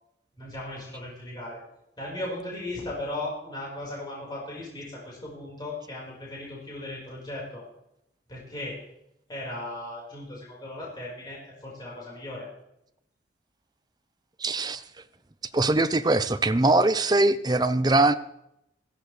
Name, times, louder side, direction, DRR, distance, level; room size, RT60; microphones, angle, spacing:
voice 1, 0.4-1.6 2.0-7.6 8.3-8.7 9.3-12.5, left 1 dB, 25° left, -5 dB, 5.0 m, -37 dB
voice 2, 14.4-14.8 15.5-18.1, right 2 dB, 20° right, 12 dB, 0.6 m, -22 dB
17.5 x 15.5 x 3.3 m, 0.82 s
head